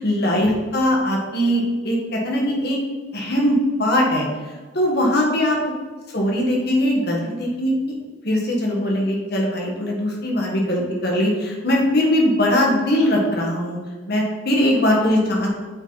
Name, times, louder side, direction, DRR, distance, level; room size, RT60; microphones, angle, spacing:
voice 1, 0.0-2.8 3.1-4.3 4.7-5.7 6.1-7.7 8.2-13.8 14.1-15.5, left 1 dB, 50° left, -2 dB, 1.9 m, -20 dB
7.6 x 6.4 x 4.1 m, 1.3 s
head